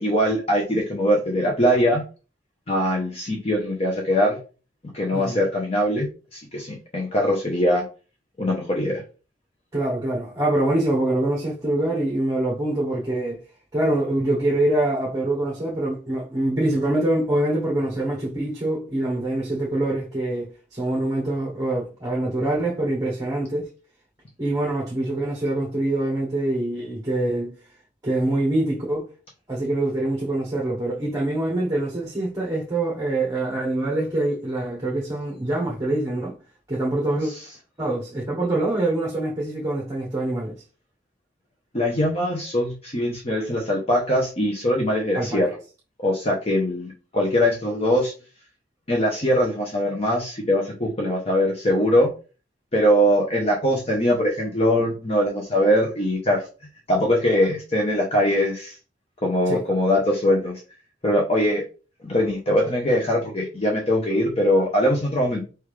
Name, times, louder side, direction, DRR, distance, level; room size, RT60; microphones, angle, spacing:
voice 1, 0.0-2.0 2.7-4.4 4.9-6.1 6.3-7.9 8.4-9.0 41.7-45.5 46.0-48.1 48.9-52.1 52.7-56.4 56.9-58.8 59.2-60.6 61.0-61.6 62.0-65.4, equal, 35° left, 0.9 m, -22 dB
voice 2, 5.1-5.5 9.7-13.4 13.7-23.7 24.4-27.6 28.0-29.1 29.5-36.4 36.7-37.3 37.8-40.6 45.1-45.4 59.5-59.6, right 1 dB, 20° right, 1.0 m, -24 dB
4.5 x 3.6 x 3.2 m
head